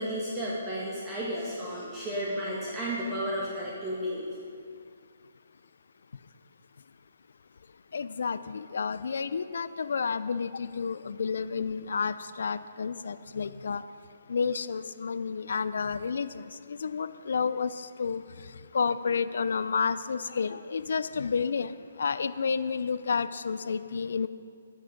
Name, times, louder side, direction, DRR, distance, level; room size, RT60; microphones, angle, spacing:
voice 1, 0.0-4.2, equal, 20° right, -7 dB, 1.7 m, -33 dB
voice 2, 7.9-13.8 14.3-18.2 18.7-24.3, left 5 dB, 65° left, 14 dB, 0.4 m, -30 dB
15.0 x 6.1 x 5.2 m, 2.3 s
figure-of-eight pair, 135°, 0 cm